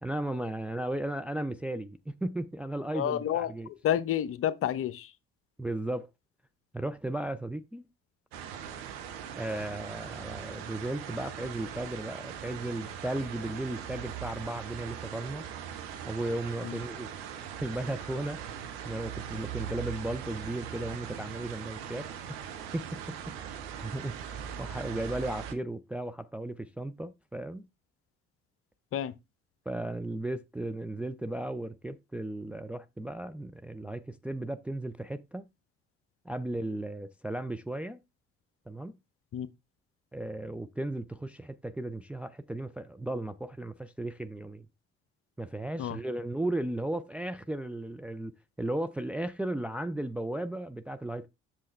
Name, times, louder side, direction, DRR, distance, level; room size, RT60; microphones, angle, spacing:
voice 1, 0.0-3.7 5.6-6.1 6.7-7.9 9.3-15.4 16.1-22.4 22.7-22.8 23.5-27.6 29.7-35.4 36.3-38.0 38.7-38.9 40.1-44.7 45.4-48.3 48.6-51.3, right 1 dB, 5° right, 0.4 m, -35 dB
voice 2, 2.9-3.5 3.8-5.1 16.6-16.7 28.9-29.1 39.3-39.5 45.8-46.0, left 10 dB, 40° left, 0.7 m, -29 dB
sound 1, 8.3-25.5, right 9 dB, 65° right, 1.1 m, -40 dB
7.5 x 7.0 x 3.2 m
figure-of-eight pair, 50°, 34 cm